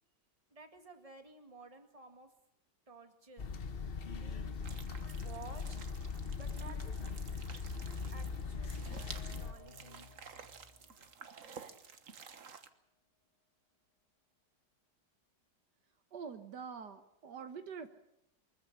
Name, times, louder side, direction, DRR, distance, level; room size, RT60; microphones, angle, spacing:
voice 1, 0.5-2.3 2.9-3.5 4.1-4.6 5.1-5.8 6.4-6.8 8.1-9.0 9.3-10.1, right 3 dB, 20° right, 6 dB, 2.3 m, -53 dB
sound 1, 3.4-9.5, left 5 dB, 40° left, 1.0 m, -40 dB
sound 2, 4.6-12.7, right 6 dB, 50° right, 1.5 m, -52 dB
sound 3, 9.0-12.5, left 2 dB, 20° left, 2.5 m, -60 dB
voice 2, 16.1-17.9, right 6 dB, 70° right, 9 dB, 1.8 m, -45 dB
24.0 x 14.5 x 10.0 m, 0.79 s
omnidirectional pair, 1.9 m